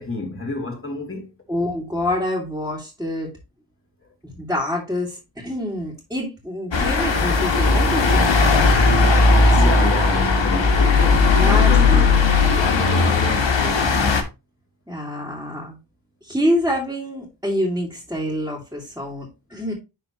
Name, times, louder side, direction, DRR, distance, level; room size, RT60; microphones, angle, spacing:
voice 1, 0.0-1.3 9.5-12.2 12.6-14.1, left 3 dB, 30° left, 2.7 m, -30 dB
voice 2, 1.5-3.3 4.2-8.7 9.5-10.0 11.4-12.2 12.4-12.7 14.9-15.8 16.2-19.7, left 1 dB, 5° right, 2.3 m, -27 dB
sound 1, 6.7-14.2, left 3 dB, 85° left, 1.3 m, -17 dB
11.0 x 3.8 x 3.0 m
wide cardioid pair, 100°, 43 cm